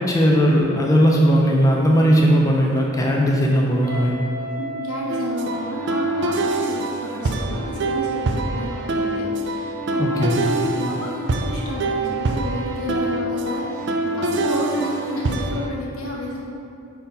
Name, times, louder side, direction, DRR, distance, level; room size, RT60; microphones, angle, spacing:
voice 1, 0.0-4.1 10.0-10.3, equal, 15° left, -2 dB, 0.6 m, -17 dB
Guitar, 3.8-6.7, right 1 dB, 30° left, 1.3 m, -34 dB
voice 2, 4.4-16.4, left 1 dB, 90° left, -5 dB, 1.2 m, -30 dB
sound 1, 5.1-15.7, right 2 dB, 55° right, 0.4 m, -25 dB
5.7 x 4.4 x 3.9 m, 2.6 s
head